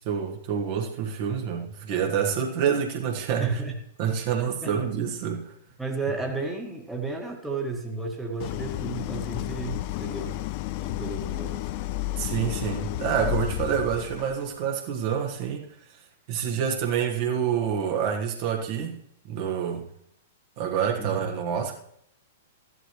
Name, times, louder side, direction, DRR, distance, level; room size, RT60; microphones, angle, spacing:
voice 1, 0.0-3.5 4.0-5.5 12.1-15.6 16.3-19.0 19.2-19.9 20.6-21.7, right 8 dB, 45° right, 1 dB, 1.5 m, -27 dB
voice 2, 3.4-3.7 4.6-4.8 5.8-10.4 10.8-11.7 21.0-21.3, right 3 dB, 5° right, 1 dB, 1.6 m, -32 dB
Idling, 8.4-14.5, left 15 dB, 40° left, 0.5 m, -32 dB
14.5 x 11.0 x 3.1 m, 0.73 s
figure-of-eight pair, 105°, 0 cm